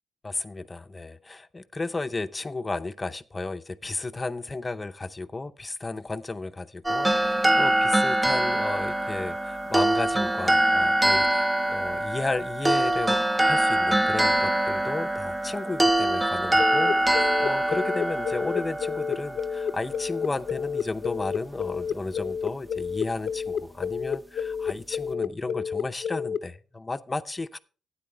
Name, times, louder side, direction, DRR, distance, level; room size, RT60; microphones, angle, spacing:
voice 1, 0.2-27.6, left 3 dB, 25° left, 0.6 m, -33 dB
sound 1, 6.8-20.1, right 1 dB, 15° right, 0.5 m, -24 dB
sound 2, 16.6-26.4, left 7 dB, 70° left, 0.5 m, -30 dB
12.5 x 9.3 x 3.3 m
cardioid pair, 85°, 0 cm